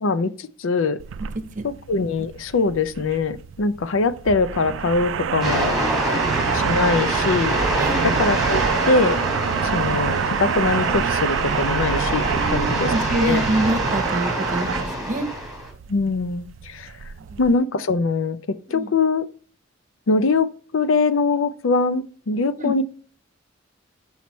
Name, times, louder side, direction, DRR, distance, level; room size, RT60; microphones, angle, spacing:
voice 1, 0.0-1.0 1.6-5.7 6.5-7.6 8.0-9.2 9.6-13.4 15.9-16.9 17.4-19.3 20.1-20.5 20.7-22.8, left 3 dB, 75° left, 0.5 m, -22 dB
sound 1, 1.0-17.6, right 7 dB, 70° right, 0.4 m, -27 dB
sound 2, 5.4-15.7, equal, ahead, 3.2 m, -26 dB
voice 2, 5.8-6.2 7.8-7.9 12.3-15.3 17.3-17.4 18.7-18.9 22.6-22.8, right 2 dB, 40° right, 0.8 m, -26 dB
5.9 x 5.6 x 3.1 m
head